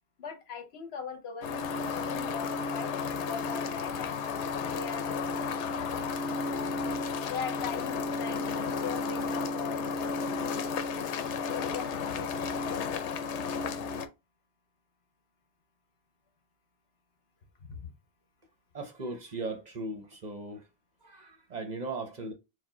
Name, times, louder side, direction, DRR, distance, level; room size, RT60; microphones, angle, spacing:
voice 1, 0.2-5.3 6.4-6.8 7.3-10.2 10.6-10.8 11.3-12.6 17.7-17.8, left 6 dB, 65° left, 1.1 m, -41 dB
sound 1, 1.4-14.1, left 4 dB, 90° left, 0.9 m, -33 dB
voice 2, 18.7-20.6 21.0-22.3, right 2 dB, 45° right, 0.7 m, -38 dB
4.5 x 2.1 x 3.6 m
omnidirectional pair, 1.1 m